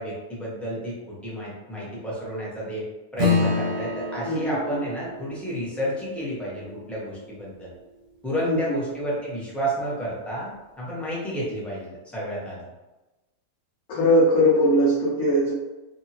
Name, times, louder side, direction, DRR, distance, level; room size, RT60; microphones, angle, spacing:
voice 1, 0.0-2.9 3.1-7.7 8.2-10.5 10.8-12.6, equal, ahead, -7 dB, 0.5 m, -31 dB
Acoustic guitar / Strum, 3.2-8.0, left 3 dB, 60° right, 0.7 m, -29 dB
voice 2, 4.2-4.8 8.4-8.8 13.9-15.5, equal, 75° left, -6 dB, 1.0 m, -20 dB
2.8 x 2.4 x 2.8 m, 1.1 s
omnidirectional pair, 1.5 m